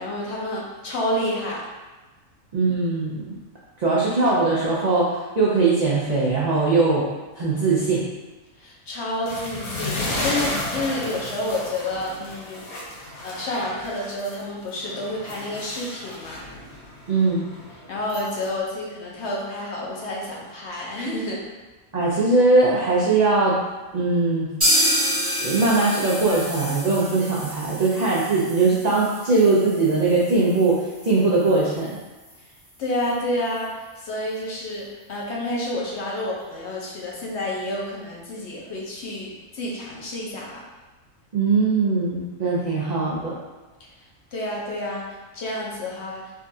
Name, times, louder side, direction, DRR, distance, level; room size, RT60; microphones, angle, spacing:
voice 1, 0.0-1.6 8.6-12.7 13.2-16.4 17.9-21.4 32.8-33.7 34.0-40.6 44.3-45.1 45.3-46.2, left 1 dB, 60° left, -3 dB, 0.8 m, -29 dB
voice 2, 2.5-3.2 3.8-7.1 7.4-8.1 17.1-17.5 21.9-23.6 23.9-24.5 25.4-32.0 41.3-43.3, right 3 dB, 80° right, -7 dB, 0.3 m, -20 dB
sound 1, 9.3-14.4 14.8-18.5, left 1 dB, 85° left, 1.2 m, -33 dB
sound 2, 24.6-32.3 32.6-32.7 33.0-33.1 33.6-33.7, equal, 20° right, 0.8 m, -28 dB
3.7 x 2.3 x 2.6 m, 1.2 s
omnidirectional pair, 1.4 m